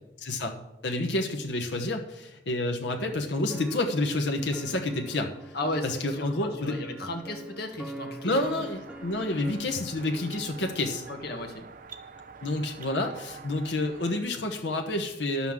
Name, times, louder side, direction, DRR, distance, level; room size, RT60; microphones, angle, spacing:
voice 1, 0.2-5.3 5.8-6.8 8.2-11.0 12.4-15.5, left 2 dB, 85° left, 3 dB, 1.1 m, -29 dB
sound 1, 3.5-11.2, right 1 dB, 5° right, 0.7 m, -44 dB
voice 2, 5.5-8.6 11.1-11.7, left 1 dB, 60° left, 3 dB, 1.6 m, -35 dB
sound 2, 8.5-14.2, right 5 dB, 50° right, 0.8 m, -47 dB
11.0 x 5.7 x 7.3 m, 0.91 s
head